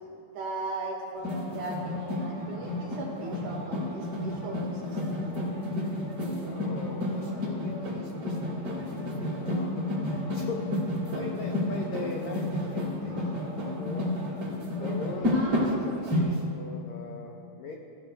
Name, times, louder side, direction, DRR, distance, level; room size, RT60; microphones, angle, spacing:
voice 1, 0.3-5.3, right 2 dB, 65° right, -1 dB, 2.7 m, -38 dB
sound 1, 1.2-16.2, left 1 dB, 35° right, 3.0 m, -31 dB
voice 2, 6.4-13.3 13.7-14.1 14.8-17.7, left 4 dB, 90° left, 1 dB, 1.5 m, -41 dB
17.5 x 15.5 x 2.2 m, 2.6 s
omnidirectional pair, 4.2 m